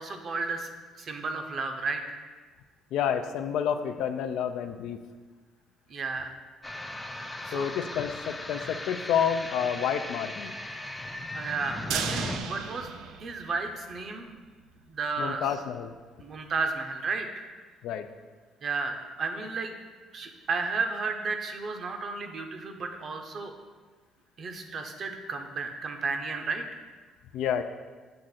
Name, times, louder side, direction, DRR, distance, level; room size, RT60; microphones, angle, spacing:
voice 1, 0.0-2.2 5.9-6.3 7.4-7.7 11.3-14.4 14.9-15.4 16.2-17.5 18.6-19.8 20.1-23.5 24.4-26.6, right 4 dB, 50° right, 5 dB, 0.7 m, -33 dB
voice 2, 2.9-5.0 7.5-10.5 15.2-15.9 17.8-18.1 27.3-27.6, left 8 dB, 80° left, 8 dB, 0.4 m, -29 dB
sound 1, 6.6-12.4, left 2 dB, 15° left, 0.5 m, -38 dB
sound 2, 11.9-14.1 14.4-14.5 14.8-14.9, right 8 dB, 80° right, 0.4 m, -35 dB
7.6 x 2.5 x 5.6 m, 1.4 s
cardioid pair, 100°, 0 cm